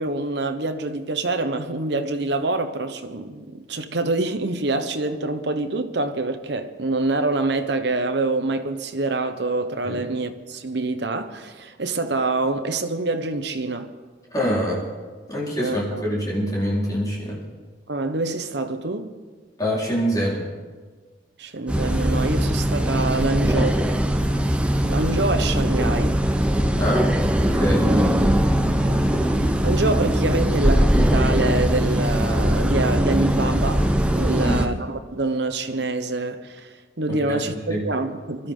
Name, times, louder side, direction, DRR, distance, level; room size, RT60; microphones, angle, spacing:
voice 1, 0.0-13.9 15.6-16.0 17.9-19.1 21.4-23.8 24.8-26.2 27.9-28.3 28.8-29.3 29.6-33.9 34.1-38.5, right 2 dB, 65° right, 1.0 m, -26 dB
voice 2, 14.3-14.8 15.3-17.4 19.6-20.5 26.8-27.0 27.6-28.3 34.3-34.6 37.3-37.4 37.7-37.8, equal, 20° left, 4.4 m, -25 dB
sound 1, 21.7-34.7, equal, 5° right, 0.7 m, -20 dB
23.5 x 13.0 x 3.8 m
head